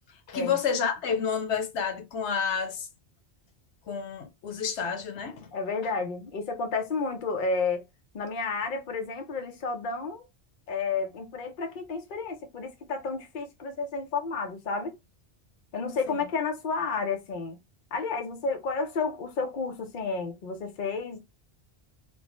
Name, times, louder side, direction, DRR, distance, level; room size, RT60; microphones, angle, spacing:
voice 1, 0.3-2.9 3.9-5.5 16.1-16.2, left 6 dB, 90° left, 1.0 m, -29 dB
voice 2, 5.5-7.8 8.1-10.2 10.7-15.0 15.7-17.6 17.9-21.2, left 4 dB, 55° left, 0.8 m, -31 dB
3.0 x 2.1 x 3.0 m
omnidirectional pair, 1.1 m